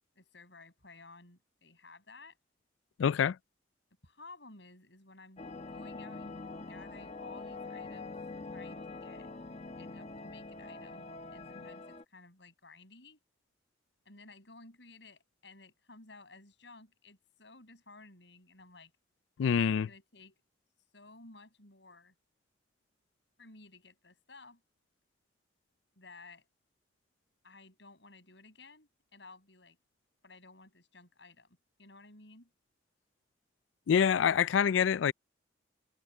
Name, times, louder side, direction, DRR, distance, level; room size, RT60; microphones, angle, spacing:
voice 1, 0.2-2.4 4.0-8.2 8.5-9.3 9.8-13.2 14.1-18.9 19.9-20.4 20.9-22.1 23.4-24.6 26.0-26.5 27.4-29.8 30.2-32.5, left 3 dB, 70° left, 7.5 m, -55 dB
voice 2, 3.0-3.4 19.4-19.9 33.9-35.1, left 7 dB, 90° left, 0.4 m, -26 dB
sound 1, 5.4-12.0, left 3 dB, 35° left, 1.0 m, -44 dB
head